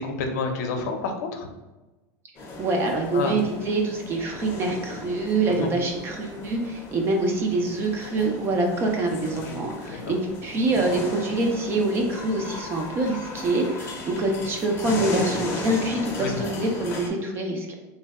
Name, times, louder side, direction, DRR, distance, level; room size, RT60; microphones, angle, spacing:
voice 1, 0.0-1.5 3.1-3.3 5.5-5.7 9.5-9.6 9.9-10.2 16.2-16.4, left 4 dB, 80° left, 4 dB, 0.6 m, -29 dB
sound 1, 2.3-17.1, left 2 dB, 25° left, 0.6 m, -36 dB
voice 2, 2.6-17.8, right 2 dB, 25° right, 2 dB, 0.5 m, -25 dB
3.2 x 2.1 x 3.5 m, 1.1 s
supercardioid pair, 155°, 9 cm